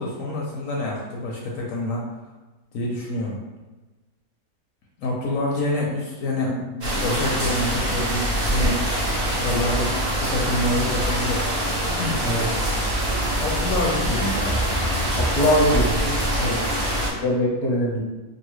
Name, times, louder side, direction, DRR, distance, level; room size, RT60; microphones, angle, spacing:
voice 1, 0.0-2.1 2.7-3.4 5.0-11.4 11.7-12.2 13.4-14.6 16.3-16.8, left 1 dB, 70° left, -3 dB, 0.9 m, -27 dB
sound 1, 6.8-17.1, right 1 dB, 45° right, 0.7 m, -24 dB
voice 2, 15.2-16.1 17.2-18.0, equal, 35° left, -4 dB, 0.6 m, -21 dB
2.7 x 2.6 x 3.0 m, 1.2 s
omnidirectional pair, 1.6 m